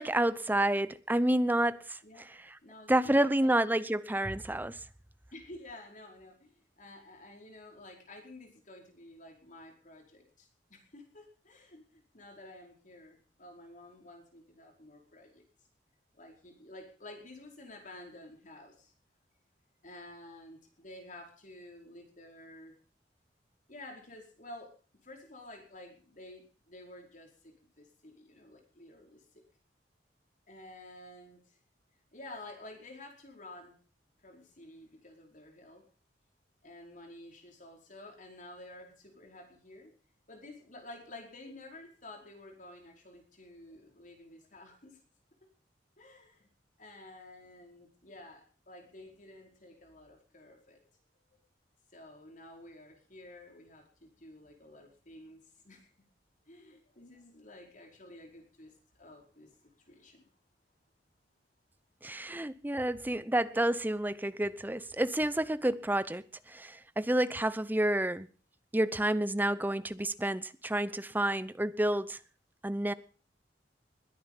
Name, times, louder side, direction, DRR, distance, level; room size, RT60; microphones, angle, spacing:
voice 1, 0.0-2.3 2.9-4.8 62.0-68.3 68.7-72.2 72.6-72.9, right 1 dB, 10° right, 0.7 m, -29 dB
voice 2, 2.6-3.5 5.3-15.4 16.1-18.9 19.8-22.7 23.7-24.7 25.0-29.2 30.5-31.6 32.1-33.8 34.2-35.8 36.6-39.9 40.3-45.0 46.0-46.5 46.8-50.8 51.3-51.4 51.9-55.9 56.5-60.3 62.8-62.9, left 1 dB, 45° left, 4.9 m, -51 dB
21.0 x 9.6 x 5.6 m
head